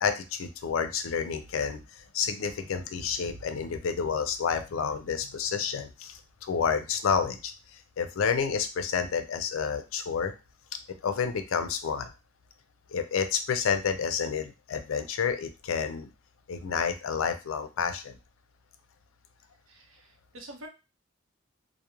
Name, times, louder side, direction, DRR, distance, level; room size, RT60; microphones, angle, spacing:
voice 1, 0.0-1.8 2.1-7.5 8.0-10.3 11.0-12.1 12.9-16.1 16.5-18.1, left 6 dB, 85° left, 8 dB, 0.4 m, -29 dB
voice 2, 19.7-20.7, right 1 dB, 85° right, 3 dB, 0.6 m, -47 dB
2.3 x 2.0 x 2.9 m, 0.28 s
head